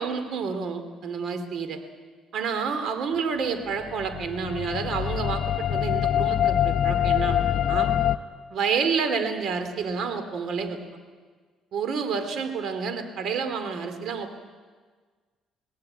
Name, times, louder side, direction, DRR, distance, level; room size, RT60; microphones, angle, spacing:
voice 1, 0.0-1.8 2.3-7.9 8.5-10.8 11.7-14.4, right 5 dB, 65° right, 8 dB, 2.7 m, -29 dB
sound 1, 3.8-8.2, left 10 dB, 65° left, 0.8 m, -24 dB
22.5 x 18.0 x 9.0 m, 1.5 s
cardioid pair, 95°, 0 cm